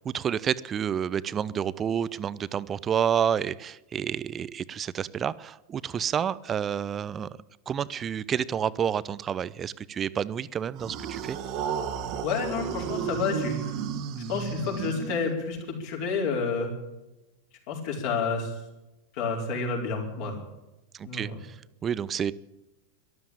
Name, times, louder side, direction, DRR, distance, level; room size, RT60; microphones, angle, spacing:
voice 1, 0.0-7.3 7.7-11.4 20.9-22.3, right 8 dB, 25° right, 19 dB, 0.6 m, -29 dB
sound 1, 10.8-15.6, right 8 dB, 40° right, 1.6 m, -33 dB
voice 2, 12.2-13.7 14.3-16.7 17.7-18.6 19.1-20.4 21.0-21.4, left 5 dB, 45° left, 0 dB, 4.8 m, -30 dB
13.0 x 12.5 x 8.8 m, 0.99 s
figure-of-eight pair, 90°, 0 cm